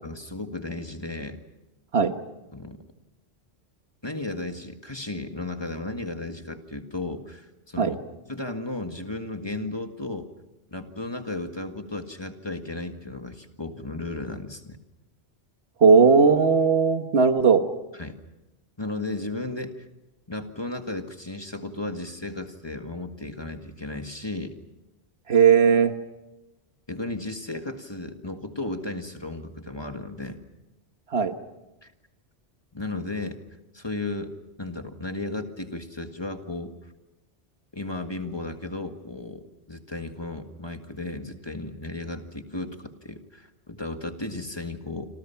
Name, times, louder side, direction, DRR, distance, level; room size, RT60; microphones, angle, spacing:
voice 1, 0.0-1.4 2.5-2.8 4.0-8.0 8.3-10.3 10.7-14.8 18.0-18.1 18.8-19.8 20.3-24.5 26.9-30.4 31.8-31.9 32.7-33.4 33.7-34.3 34.6-36.7 37.7-39.4 39.7-45.1, left 2 dB, 25° left, 6 dB, 1.7 m, -34 dB
voice 2, 15.8-17.6 25.3-25.9 31.1-31.3, right 5 dB, 70° right, 8 dB, 1.6 m, -17 dB
28.0 x 26.5 x 5.8 m, 1.0 s
omnidirectional pair, 1.1 m